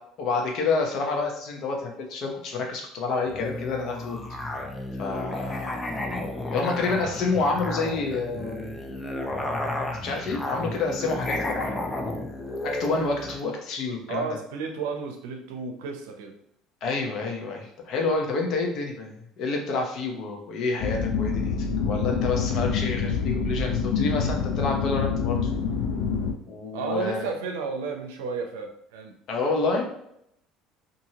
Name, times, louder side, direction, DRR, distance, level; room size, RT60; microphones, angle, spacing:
voice 1, 0.2-4.2 5.0-5.8 6.5-8.6 10.0-11.8 12.6-14.3 16.8-21.5 21.8-25.5 26.5-27.2 29.3-29.8, left 3 dB, 60° left, 1 dB, 0.8 m, -28 dB
Musical instrument, 3.3-13.4, left 2 dB, 15° left, 0.5 m, -32 dB
voice 2, 14.1-16.4 26.7-29.1, right 5 dB, 85° right, 4 dB, 0.5 m, -32 dB
sound 1, 20.8-26.3, left 5 dB, 80° left, 0.4 m, -26 dB
2.8 x 2.7 x 2.8 m, 0.73 s
supercardioid pair, 90°, 0 cm